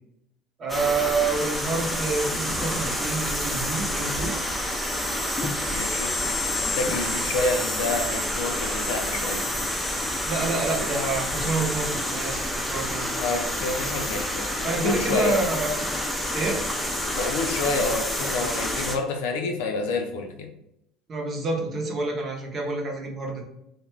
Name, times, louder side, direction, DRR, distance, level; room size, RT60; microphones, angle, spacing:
voice 1, 0.6-4.4 10.3-13.1 14.6-15.8 16.3-16.6 21.1-23.4, right 3 dB, 40° right, 0 dB, 0.8 m, -28 dB
sound 1, 0.7-19.0, left 1 dB, 5° left, 0.5 m, -28 dB
voice 2, 5.7-6.1 6.6-9.4 13.2-15.4 17.1-20.5, left 3 dB, 80° left, 4 dB, 0.4 m, -28 dB
2.4 x 2.2 x 3.1 m, 0.80 s
supercardioid pair, 85°, 0 cm